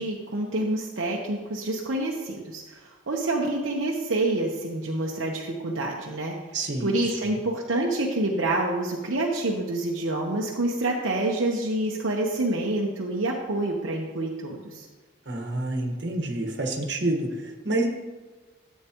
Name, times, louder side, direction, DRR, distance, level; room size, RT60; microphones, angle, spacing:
voice 1, 0.0-6.4 6.8-14.9, right 2 dB, 70° right, -2 dB, 1.0 m, -27 dB
voice 2, 6.5-7.3 15.2-17.9, right 2 dB, 55° right, 1 dB, 1.5 m, -28 dB
13.5 x 8.4 x 3.0 m, 1.3 s
head